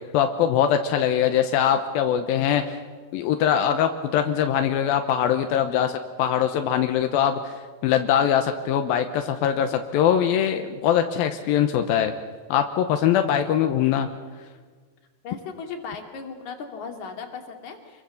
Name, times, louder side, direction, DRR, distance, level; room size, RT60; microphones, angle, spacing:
voice 1, 0.1-2.8 3.1-7.4 7.8-12.1 12.5-14.1, left 9 dB, 85° left, 7 dB, 2.8 m, -22 dB
voice 2, 15.2-18.0, left 5 dB, 55° left, 4 dB, 3.6 m, -37 dB
28.0 x 22.5 x 7.1 m, 1.5 s
omnidirectional pair, 4.1 m